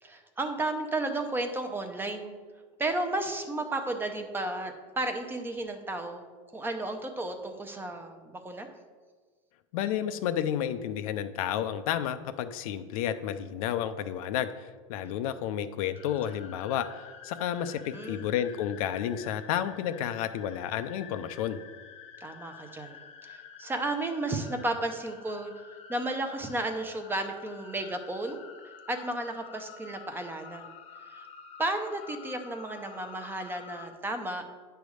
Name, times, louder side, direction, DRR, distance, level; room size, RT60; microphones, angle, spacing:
voice 1, 0.0-2.4 2.8-6.2 6.5-8.7 15.0-15.2 17.7-18.3 22.2-25.5 25.9-28.4 28.9-30.7 31.1-31.3 31.6-34.6, right 2 dB, 10° right, 6 dB, 0.6 m, -33 dB
voice 2, 9.7-21.6, left 10 dB, 80° left, 10 dB, 0.6 m, -31 dB
sound 1, 15.9-33.9, left 7 dB, 35° left, 0.8 m, -49 dB
9.4 x 3.5 x 6.3 m, 1.5 s
supercardioid pair, 145°, 18 cm